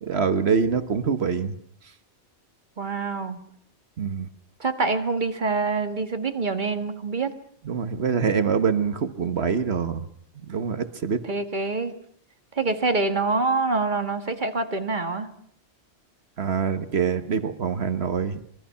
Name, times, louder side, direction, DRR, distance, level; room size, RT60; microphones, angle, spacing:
voice 1, 0.0-1.6 4.0-4.3 7.6-10.1 10.5-11.3 16.4-18.4, right 6 dB, 70° right, 10 dB, 1.5 m, -25 dB
voice 2, 2.8-3.4 4.6-7.3 11.3-11.9 12.6-15.3, right 3 dB, 45° right, 7 dB, 1.8 m, -25 dB
26.0 x 22.5 x 5.7 m, 0.63 s
omnidirectional pair, 1.1 m